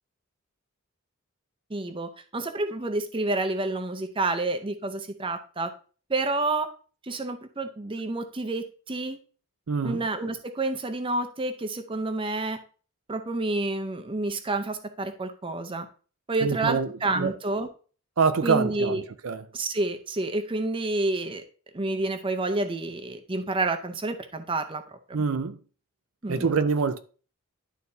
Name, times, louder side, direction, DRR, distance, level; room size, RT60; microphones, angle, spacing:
voice 1, 1.7-5.7 6.1-6.7 7.0-9.2 9.8-12.6 13.1-15.9 16.3-17.7 18.4-19.0 19.5-21.4 21.7-25.2 26.2-26.5, right 2 dB, 25° right, 0.6 m, -29 dB
voice 2, 9.7-10.0 16.4-16.9 17.2-17.3 18.2-19.4 25.1-25.6 26.3-27.0, right 5 dB, 75° right, 0.5 m, -25 dB
11.5 x 4.1 x 2.7 m
head